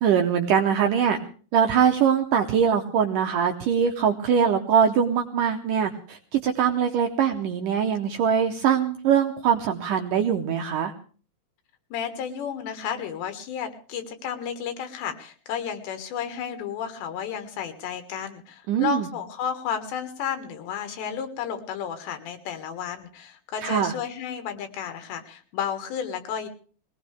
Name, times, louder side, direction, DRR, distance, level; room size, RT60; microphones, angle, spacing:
voice 1, 0.0-1.2 1.5-10.9 18.7-19.1 23.6-23.9, right 7 dB, 75° right, 4 dB, 2.0 m, -22 dB
voice 2, 11.9-26.5, left 8 dB, 85° left, 8 dB, 3.9 m, -32 dB
21.0 x 18.0 x 3.4 m, 0.40 s
omnidirectional pair, 4.9 m